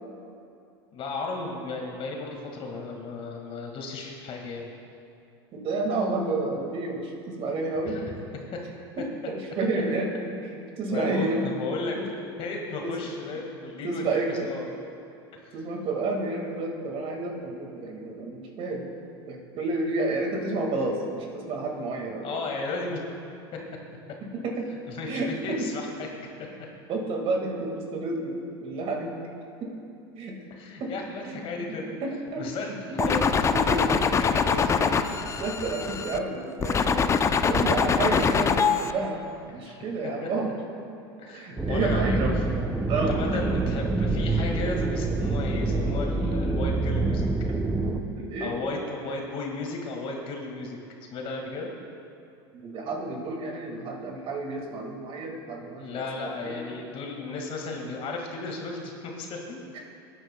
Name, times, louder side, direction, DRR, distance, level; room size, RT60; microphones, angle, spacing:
voice 1, 0.9-4.7 7.9-8.2 10.9-12.1 12.4-14.8 15.5-15.6 22.2-23.0 24.9-26.3 30.5-32.0 32.4-32.7 33.1-33.2 33.7-33.9 34.2-34.9 39.6-39.8 40.2-40.5 41.2-42.2 42.9-47.3 48.4-50.8 51.1-51.7 55.8-59.6, left 3 dB, 45° left, 1 dB, 1.8 m, -34 dB
voice 2, 5.5-8.0 9.0-10.1 10.4-11.5 11.9-12.1 12.8-12.9 13.8-14.5 15.5-22.4 24.2-24.7 25.1-25.7 26.9-29.2 29.6-29.7 30.1-30.4 30.8-30.9 31.2-31.4 32.0-33.1 33.5-33.8 34.5-34.6 35.0-35.1 35.4-37.0 37.4-39.2 39.5-40.5 41.3-42.3 42.9-43.4 48.2-48.8 52.6-56.8 59.7-59.8, right 2 dB, 45° right, 1 dB, 1.9 m, -30 dB
sound 1, 33.0-36.2 36.6-38.9, left 6 dB, 20° left, 0.5 m, -23 dB
sound 2, 41.6-48.0, right 2 dB, 10° right, 0.7 m, -26 dB
18.0 x 9.0 x 2.2 m, 2.6 s
hypercardioid pair, 95°, 13 cm